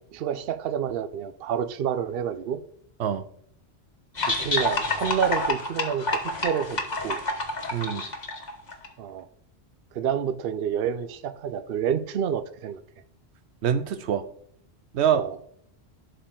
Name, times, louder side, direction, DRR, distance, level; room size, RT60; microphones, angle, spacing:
voice 1, 0.1-2.6 4.4-7.2 9.0-9.3 9.9-12.8 15.1-15.4, right 8 dB, 65° right, 0.8 m, -29 dB
sound 1, 4.2-8.9, left 2 dB, 40° left, 1.3 m, -28 dB
voice 2, 7.7-8.0 13.6-14.2 14.9-15.4, right 8 dB, 90° right, 1.0 m, -25 dB
11.5 x 4.6 x 3.7 m
omnidirectional pair, 1.1 m